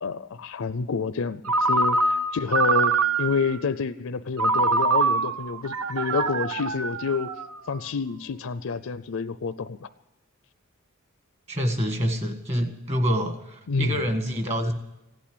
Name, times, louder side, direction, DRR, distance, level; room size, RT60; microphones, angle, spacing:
voice 1, 0.0-7.3 7.7-9.9 13.7-14.0, left 5 dB, 65° left, 13 dB, 0.5 m, -28 dB
Ringtone, 1.5-3.5 4.4-7.7, right 3 dB, 80° right, 0.8 m, -24 dB
voice 2, 11.5-14.7, equal, 30° right, 5 dB, 1.8 m, -26 dB
16.0 x 8.7 x 9.9 m, 0.91 s
head